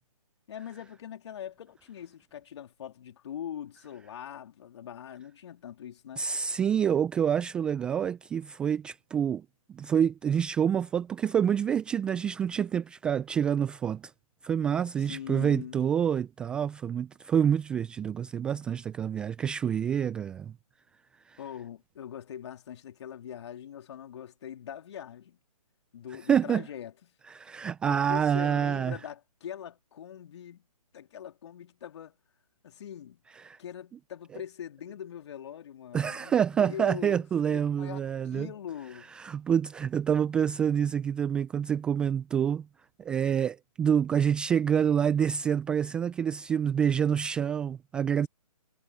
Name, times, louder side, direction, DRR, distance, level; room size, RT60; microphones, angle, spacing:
voice 1, 0.5-6.3 15.0-15.9 21.4-25.4 25.9-26.9 27.9-30.7 30.9-32.1 32.6-33.2 33.6-37.2 37.5-39.1, left 9 dB, 45° left, 3.4 m, -42 dB
voice 2, 6.2-14.1 14.4-20.5 21.3-21.4 26.3-26.6 27.3-29.0 33.4-33.6 35.9-38.5 39.1-42.7 43.0-48.3, right 8 dB, 5° right, 0.4 m, -27 dB
figure-of-eight pair, 145°, 20 cm